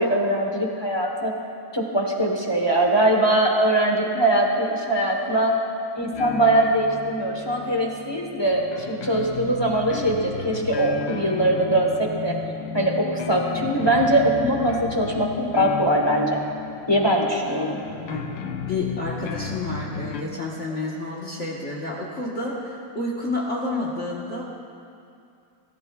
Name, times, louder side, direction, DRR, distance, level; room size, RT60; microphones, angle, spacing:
voice 1, 0.0-1.3 1.7-5.6 5.9-12.3 12.7-16.4 16.9-17.8, right 1 dB, 20° left, 0 dB, 0.8 m, -22 dB
sound 1, 6.1-20.2, left 7 dB, 75° left, 1.3 m, -34 dB
voice 2, 18.7-24.4, left 2 dB, 40° left, -4 dB, 1.5 m, -29 dB
23.5 x 15.0 x 2.4 m, 2.5 s
omnidirectional pair, 2.1 m